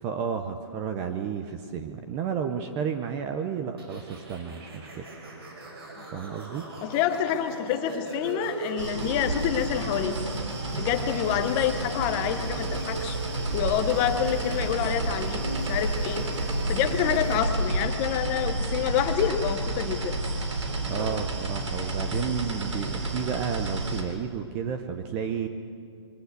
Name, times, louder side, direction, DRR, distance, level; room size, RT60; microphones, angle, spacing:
voice 1, 0.0-5.1 6.1-6.6 20.9-25.5, right 7 dB, 15° right, 7 dB, 0.5 m, -32 dB
sound 1, 3.8-17.4, right 1 dB, 55° right, 5.8 m, -38 dB
voice 2, 6.8-10.1 10.7-13.2 13.5-16.2 16.7-20.1, left 10 dB, 15° left, 9 dB, 0.8 m, -27 dB
sound 2, 8.8-24.0, right 2 dB, 80° right, 3.5 m, -30 dB
22.5 x 14.5 x 8.1 m, 2.3 s
hypercardioid pair, 165°, 15 cm